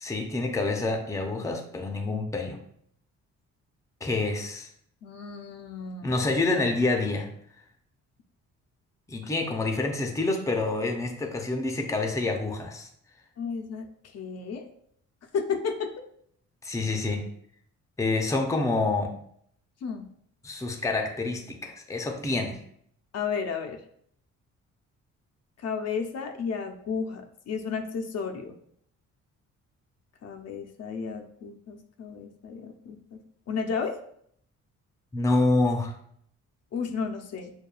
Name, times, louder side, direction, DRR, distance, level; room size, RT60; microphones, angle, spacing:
voice 1, 0.0-2.6 4.0-4.7 6.0-7.3 9.1-12.9 16.6-17.3 18.0-19.1 20.4-22.6 35.1-35.9, left 2 dB, 10° left, 4 dB, 0.5 m, -27 dB
voice 2, 5.0-6.1 13.4-13.9 14.1-14.7 15.3-15.9 19.8-20.1 23.1-23.8 25.6-28.5 30.2-33.0 33.5-34.0 36.7-37.5, left 5 dB, 60° left, 4 dB, 0.5 m, -32 dB
6.5 x 2.2 x 2.3 m, 0.66 s
cardioid pair, 90°, 30 cm